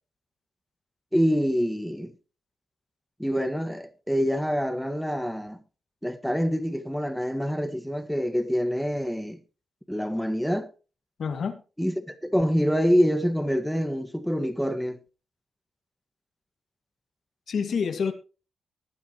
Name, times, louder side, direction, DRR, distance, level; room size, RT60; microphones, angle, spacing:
voice 1, 1.1-2.1 3.2-5.6 6.0-9.4 9.9-10.7 11.8-15.0, equal, ahead, 1.7 m, -26 dB
voice 2, 11.2-11.6 17.5-18.1, left 6 dB, 65° left, 2.1 m, -27 dB
19.5 x 9.6 x 3.1 m
cardioid pair, 90°, 0 cm